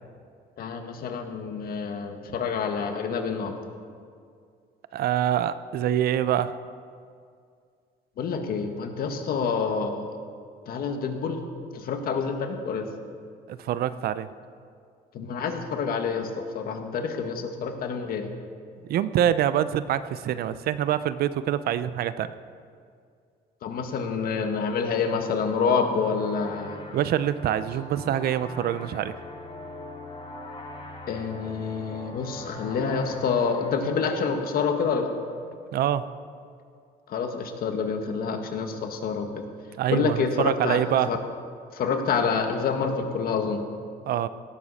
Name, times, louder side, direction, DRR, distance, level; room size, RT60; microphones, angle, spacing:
voice 1, 0.6-3.5 8.2-10.1 10.7-11.4 11.7-12.9 15.1-16.3 16.5-18.3 23.6-26.8 31.1-35.1 37.1-39.4 39.9-41.2 41.7-43.6, left 5 dB, 60° left, 5 dB, 1.6 m, -27 dB
voice 2, 4.9-6.5 13.5-14.3 18.9-22.3 26.9-29.1 35.7-36.0 39.8-41.1 44.1-44.3, right 11 dB, 65° right, 14 dB, 0.6 m, -25 dB
sound 1, 24.9-35.3, left 2 dB, 35° left, 2.2 m, -42 dB
17.5 x 13.0 x 4.2 m, 2.3 s
cardioid pair, 110°, 17 cm